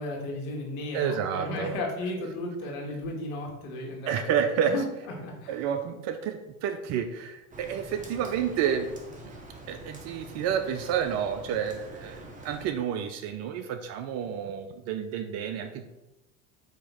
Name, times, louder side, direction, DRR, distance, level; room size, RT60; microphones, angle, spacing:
voice 1, 0.0-4.3 4.7-4.9 5.2-5.6, left 2 dB, 55° left, 0 dB, 1.4 m, -34 dB
voice 2, 0.9-1.8 4.1-4.8 5.5-8.9 9.7-15.9, right 8 dB, 40° right, 8 dB, 0.4 m, -30 dB
Rain, 7.5-12.7, right 1 dB, 20° right, 0.9 m, -45 dB
4.5 x 2.8 x 4.2 m, 0.97 s
hypercardioid pair, 85°, 41 cm